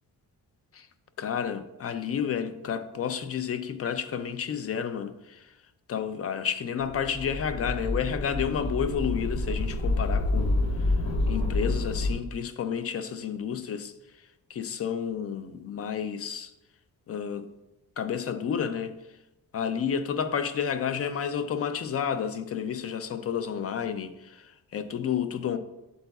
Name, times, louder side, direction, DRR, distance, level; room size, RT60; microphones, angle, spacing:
voice 1, 1.2-5.5 5.9-10.9 11.3-13.9 14.5-16.5 17.1-17.5 18.0-19.0 19.5-25.6, left 7 dB, 40° left, 0.4 m, -31 dB
sound 1, 6.8-12.1, left 2 dB, 75° left, 1.5 m, -28 dB
8.1 x 8.0 x 2.3 m
wide cardioid pair, 175°, 37 cm